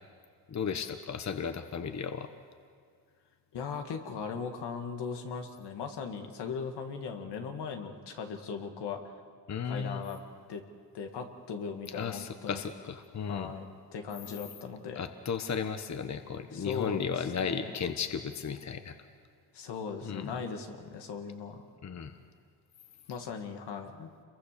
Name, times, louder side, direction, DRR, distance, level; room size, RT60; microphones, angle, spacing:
voice 1, 0.5-2.3 9.5-10.0 11.9-13.5 14.9-18.9 20.0-20.3 21.8-22.1, left 6 dB, 45° left, 8 dB, 1.2 m, -34 dB
voice 2, 3.5-9.1 9.6-10.2 10.5-10.6 10.9-12.6 13.3-13.6 13.9-15.0 16.5-17.7 19.5-21.7 23.1-24.1, left 6 dB, 75° left, 4 dB, 2.1 m, -38 dB
27.5 x 23.0 x 6.8 m, 2.1 s
cardioid pair, 75°, 40 cm